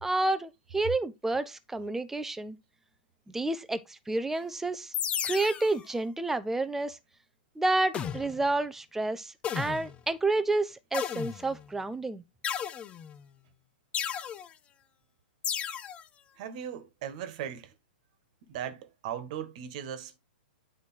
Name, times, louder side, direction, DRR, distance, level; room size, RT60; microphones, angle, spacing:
voice 1, 0.0-2.6 3.3-4.9 5.2-7.0 7.6-12.2, right 2 dB, 5° right, 0.8 m, -30 dB
sound 1, 4.9-5.8 7.9-8.5 9.4-10.0 10.9-11.7 12.4-13.2 13.9-14.5 15.4-16.0, left 9 dB, 25° left, 0.9 m, -34 dB
voice 2, 16.4-17.7 18.4-20.2, right 9 dB, 50° right, 1.6 m, -38 dB
9.3 x 4.8 x 4.3 m
hypercardioid pair, 125°, 5 cm